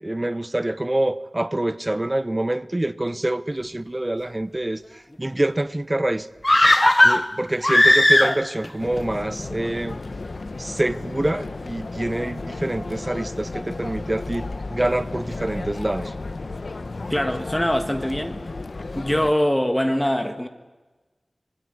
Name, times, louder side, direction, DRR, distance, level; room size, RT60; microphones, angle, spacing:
voice 1, 0.0-4.8 5.2-6.3 7.0-10.0 10.6-16.1, right 1 dB, 25° right, 1.0 m, -26 dB
sound 1, 6.4-8.7 9.0-9.1, left 1 dB, 25° left, 0.8 m, -16 dB
sound 2, 8.8-19.3, left 3 dB, 70° left, 1.2 m, -33 dB
voice 2, 17.1-18.4 18.9-20.5, equal, 10° left, 1.7 m, -23 dB
27.0 x 22.5 x 9.8 m
wide cardioid pair, 60°, 0 cm